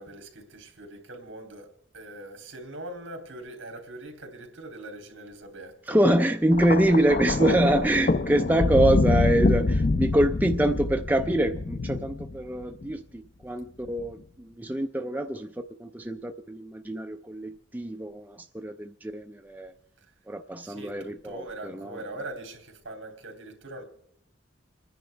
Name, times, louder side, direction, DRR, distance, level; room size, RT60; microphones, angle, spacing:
voice 1, 0.0-6.0 7.3-7.9 20.6-23.8, right 1 dB, 65° right, 3.0 m, -42 dB
voice 2, 5.9-14.2 14.6-15.5 15.8-19.7 20.3-22.0, right 1 dB, 10° right, 0.4 m, -25 dB
Thunder, 6.5-12.9 13.9-14.1, left 3 dB, 45° left, 0.5 m, -26 dB
28.0 x 10.5 x 3.4 m
head